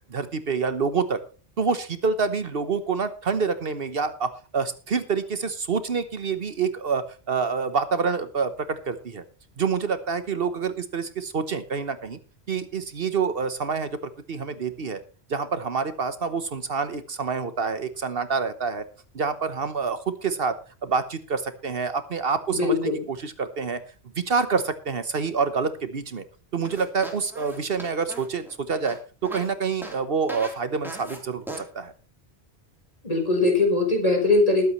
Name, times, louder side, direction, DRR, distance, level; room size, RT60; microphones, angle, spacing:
voice 1, 0.1-1.2 1.6-9.2 9.6-12.2 12.5-14.0 14.3-15.0 15.3-18.8 19.1-20.6 20.8-23.8 24.2-26.2 26.5-29.0 29.2-31.9, right 5 dB, 65° right, 11 dB, 1.2 m, -27 dB
voice 2, 22.5-23.0 33.0-34.7, left 2 dB, 35° left, 2 dB, 4.3 m, -21 dB
sound 1, 26.6-29.5 29.8-30.0 30.3-30.5 30.8-31.2 31.5-31.6, right 1 dB, ahead, 3.4 m, -38 dB
21.0 x 8.3 x 3.1 m, 0.36 s
omnidirectional pair, 1.1 m